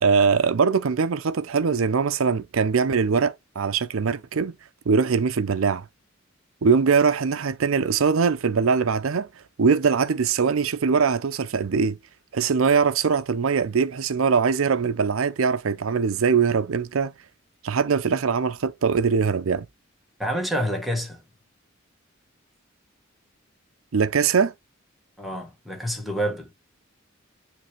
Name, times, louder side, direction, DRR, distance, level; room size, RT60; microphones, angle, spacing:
voice 1, 0.0-4.5 4.9-5.8 6.6-9.3 9.6-12.0 12.3-17.1 17.6-19.7 23.9-24.5, right 5 dB, 80° right, 0.5 m, -22 dB
voice 2, 20.2-21.2 25.2-26.5, equal, ahead, 1.7 m, -28 dB
9.0 x 3.3 x 3.2 m
head